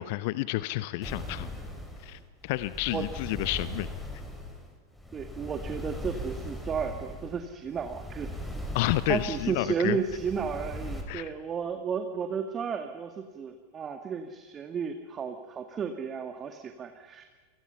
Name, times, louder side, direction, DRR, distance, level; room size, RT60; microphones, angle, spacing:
voice 1, 0.0-1.5 2.0-3.9 8.7-10.0 11.1-11.3, left 18 dB, 50° left, 16 dB, 0.8 m, -30 dB
sound 1, 1.0-11.0, left 1 dB, 5° left, 5.9 m, -39 dB
voice 2, 5.1-8.3 9.1-17.2, right 6 dB, 25° right, 6 dB, 2.0 m, -33 dB
29.5 x 26.0 x 5.7 m, 1.4 s
figure-of-eight pair, 90°, 0 cm